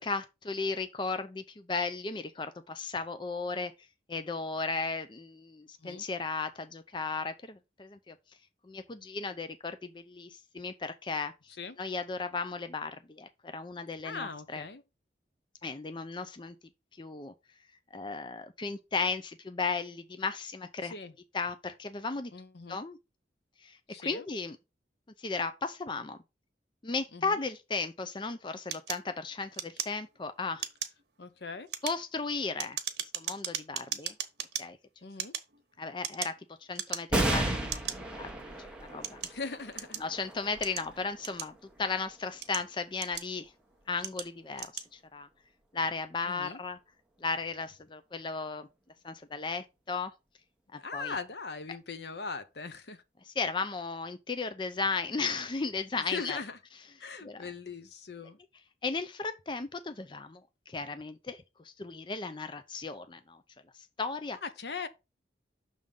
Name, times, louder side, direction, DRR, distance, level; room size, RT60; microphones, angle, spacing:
voice 1, 0.0-3.7 4.1-8.2 8.6-11.3 11.8-14.6 15.6-16.6 17.0-17.3 17.9-20.9 21.3-22.3 22.7-23.0 23.6-24.6 25.2-26.2 26.8-30.7 31.8-32.8 33.2-34.1 34.6-34.8 35.8-36.3 36.7-38.5 38.9-39.2 40.0-41.5 41.8-43.5 43.9-45.3 45.7-46.8 47.2-48.7 49.0-50.1 50.7-51.1 53.3-56.4 57.2-57.4 58.8-63.4 64.0-64.4, left 4 dB, 25° left, 0.5 m, -35 dB
voice 2, 14.0-14.8 20.8-21.1 22.3-22.8 23.9-24.3 27.1-27.4 31.2-31.7 35.0-35.3 39.2-40.0 46.3-46.6 50.7-53.0 55.9-56.6 57.0-58.4 64.4-64.9, left 4 dB, 70° left, 0.8 m, -40 dB
sound 1, 28.7-30.2 30.6-31.0 31.6-34.6 35.1-36.4 36.7-37.3 37.7-38.0 38.6-40.1 40.6-41.8 42.3-43.5 44.0-44.3 44.5-44.9, right 10 dB, 70° right, 1.1 m, -37 dB
sound 2, 37.1-44.0 44.6-44.7 45.8-46.4, right 1 dB, 5° right, 1.0 m, -35 dB
6.3 x 3.6 x 5.4 m
head